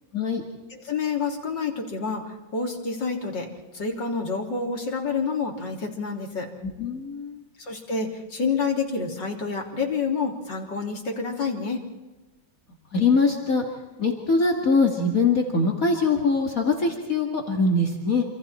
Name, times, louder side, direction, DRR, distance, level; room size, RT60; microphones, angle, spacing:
voice 1, 0.7-3.5 3.7-6.5 7.6-11.8, left 5 dB, 65° left, 1 dB, 4.0 m, -28 dB
voice 2, 6.6-7.4 12.9-13.6 14.0-18.2, left 3 dB, 45° left, 1 dB, 2.6 m, -22 dB
28.0 x 27.0 x 4.4 m, 1.1 s
omnidirectional pair, 2.1 m